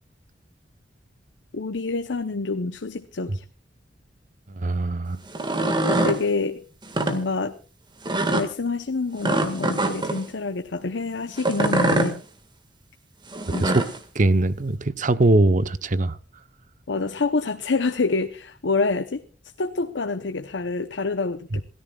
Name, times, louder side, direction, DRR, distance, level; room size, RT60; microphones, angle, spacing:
voice 1, 1.5-3.4 5.9-6.6 7.1-7.5 8.3-12.2 13.5-13.8 16.9-19.2 19.6-21.6, left 3 dB, 85° left, 0.8 m, -27 dB
voice 2, 4.5-5.2 13.6-13.8 14.2-16.2 21.5-21.6, right 2 dB, 45° right, 0.8 m, -21 dB
sound 1, 5.3-6.2 6.8-7.2 8.1-8.5 9.2-10.2 11.4-12.1 13.3-14.0, right 1 dB, 25° right, 1.8 m, -23 dB
27.5 x 14.0 x 2.4 m
head